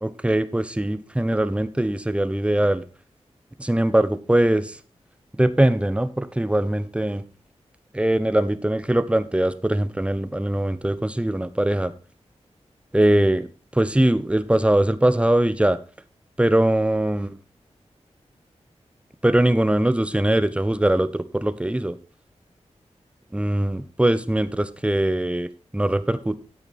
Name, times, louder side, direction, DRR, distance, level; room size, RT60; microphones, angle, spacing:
voice 1, 0.0-2.8 3.6-4.8 5.4-7.2 7.9-11.9 12.9-13.5 13.7-15.8 16.4-17.4 19.2-22.0 23.3-26.4, right 1 dB, 10° right, 13 dB, 0.9 m, -21 dB
9.6 x 8.7 x 4.2 m, 0.35 s
wide cardioid pair, 70°, 12 cm